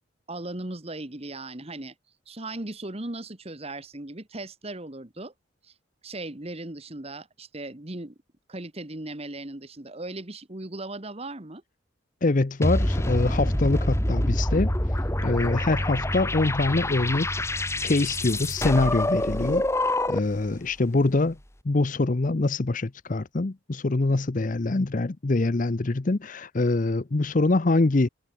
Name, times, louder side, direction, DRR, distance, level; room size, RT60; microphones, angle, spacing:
voice 1, 0.3-1.9 2.3-5.3 5.6-5.7 6.0-8.1 8.5-11.6, right 2 dB, 30° right, 1.5 m, -37 dB
voice 2, 12.2-14.7 15.2-19.7 20.1-21.4 21.6-28.1, left 2 dB, 40° left, 0.6 m, -24 dB
sound 1, 12.6-20.4, left 1 dB, 15° left, 1.8 m, -26 dB
head